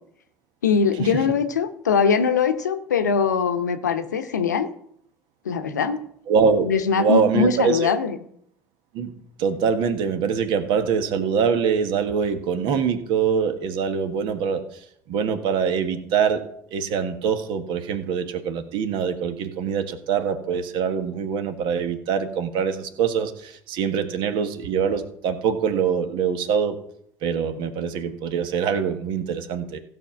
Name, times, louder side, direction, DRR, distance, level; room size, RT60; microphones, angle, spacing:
voice 1, 0.6-4.7 5.4-6.0 6.6-8.2, left 6 dB, 90° left, 9 dB, 0.8 m, -22 dB
voice 2, 6.3-6.7 7.0-7.9 8.9-9.1 9.4-16.4 16.7-26.8 27.2-29.8, right 6 dB, 60° right, 8 dB, 1.5 m, -24 dB
15.5 x 5.7 x 5.9 m, 0.69 s
hypercardioid pair, 65°, 9 cm